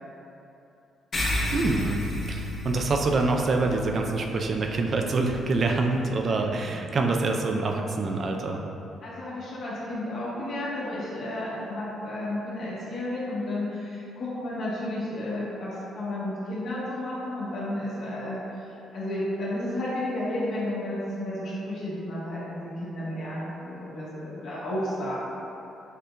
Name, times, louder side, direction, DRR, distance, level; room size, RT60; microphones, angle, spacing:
sound 1, 1.1-6.0, left 1 dB, 45° left, 0.7 m, -33 dB
voice 1, 1.5-8.6, right 3 dB, 50° right, 3 dB, 0.4 m, -26 dB
voice 2, 9.0-18.4 18.9-25.1, left 1 dB, 65° left, -8 dB, 1.3 m, -32 dB
6.5 x 2.3 x 2.2 m, 2.8 s
cardioid pair, 90°, 0 cm